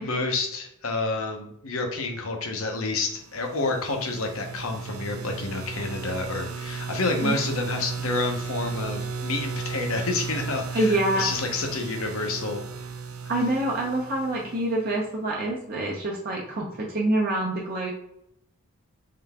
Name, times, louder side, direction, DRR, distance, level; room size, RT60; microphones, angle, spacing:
voice 1, 0.0-12.6, left 3 dB, 70° left, 3 dB, 0.9 m, -29 dB
sound 1, 3.1-14.9, right 5 dB, 70° right, 0.5 m, -35 dB
voice 2, 10.7-11.3 13.3-17.9, right 1 dB, 40° right, -3 dB, 0.8 m, -26 dB
3.8 x 3.4 x 3.5 m, 0.76 s
head